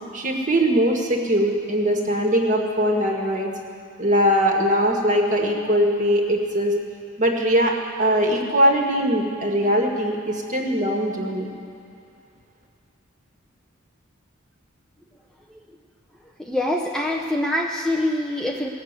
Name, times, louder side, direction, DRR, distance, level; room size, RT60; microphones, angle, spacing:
voice 1, 0.1-3.5 4.0-6.8 7.2-7.7 8.0-11.5, equal, 35° right, 1 dB, 1.7 m, -21 dB
voice 2, 16.4-18.7, left 1 dB, 5° left, -1 dB, 0.6 m, -24 dB
19.5 x 6.5 x 8.1 m, 2.5 s
head